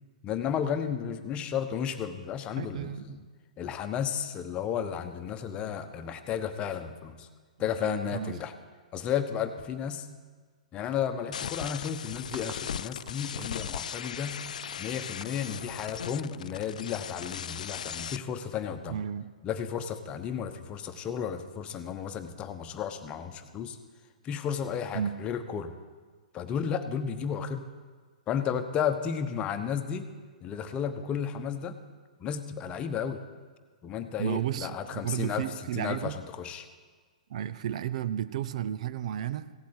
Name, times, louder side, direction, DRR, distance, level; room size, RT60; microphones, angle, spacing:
voice 1, 0.2-3.2 3.6-7.3 7.6-8.5 8.9-10.1 10.7-14.4 14.8-19.0 19.4-23.8 24.2-25.7 26.3-27.7 28.3-30.1 30.4-31.8 32.2-33.2 33.8-36.7, left 8 dB, 25° left, 8 dB, 1.0 m, -33 dB
voice 2, 2.6-3.3 7.8-8.4 18.9-19.3 24.9-25.2 34.2-36.2 37.3-39.5, right 10 dB, 60° right, 15 dB, 0.5 m, -33 dB
sound 1, 11.3-18.2, left 8 dB, 70° left, 0.3 m, -38 dB
sound 2, 11.8-16.2, right 8 dB, 35° right, 1.0 m, -50 dB
16.0 x 8.4 x 8.2 m, 1.5 s
hypercardioid pair, 125°, 4 cm